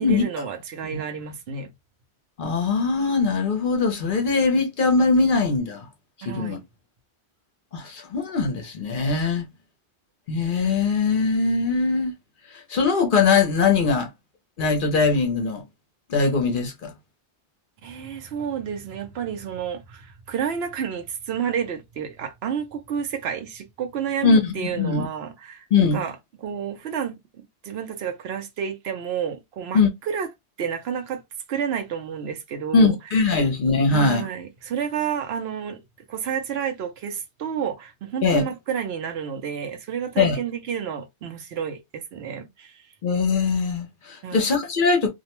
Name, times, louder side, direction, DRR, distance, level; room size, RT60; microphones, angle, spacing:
voice 1, 0.0-1.7 6.2-6.6 17.8-25.7 25.9-27.2 27.6-30.3 30.6-31.2 31.5-32.9 33.2-33.4 33.9-35.8 36.1-42.9 44.2-44.5, right 8 dB, 70° right, 0.8 m, -30 dB
voice 2, 2.4-5.9 6.2-6.6 7.7-9.4 10.3-12.1 12.5-14.1 14.6-15.6 16.1-16.9 24.2-25.1 25.7-26.0 29.7-29.9 32.7-34.3 38.2-38.5 40.2-40.4 43.0-45.1, left 4 dB, 55° left, 0.7 m, -21 dB
2.5 x 2.0 x 2.8 m
omnidirectional pair, 1.2 m